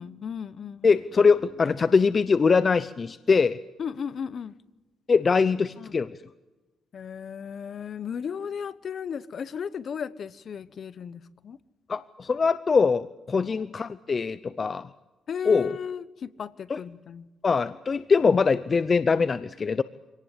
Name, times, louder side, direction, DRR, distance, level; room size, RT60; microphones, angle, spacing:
voice 1, 0.0-1.0 3.8-4.5 5.8-6.0 6.9-11.6 15.3-17.3 18.2-18.3, left 7 dB, 55° left, 17 dB, 1.0 m, -35 dB
voice 2, 0.8-3.6 5.1-6.2 11.9-14.9 15.5-15.7 16.7-16.8 17.4-19.8, left 5 dB, 35° left, 15 dB, 0.7 m, -22 dB
25.5 x 18.0 x 8.5 m, 1.2 s
cardioid pair, 90°, 0 cm